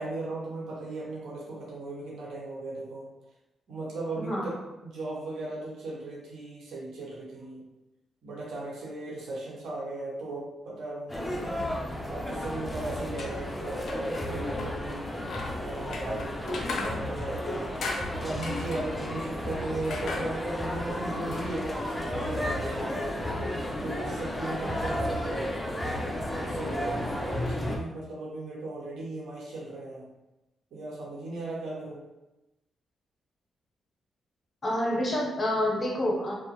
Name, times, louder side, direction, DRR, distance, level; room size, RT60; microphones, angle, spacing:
voice 1, 0.0-3.1 3.7-7.6 8.2-11.6 12.1-15.1 15.6-23.0 23.8-25.6 26.1-30.1 30.7-32.1, right 2 dB, 75° right, -4 dB, 0.9 m, -37 dB
sound 1, 11.1-27.8, left 1 dB, 10° left, 0.5 m, -33 dB
sound 2, 13.1-23.1, left 3 dB, 70° left, 0.4 m, -41 dB
voice 2, 34.6-36.3, left 1 dB, 35° left, -2 dB, 0.8 m, -27 dB
2.8 x 2.0 x 3.0 m, 0.98 s
cardioid pair, 65°, 0 cm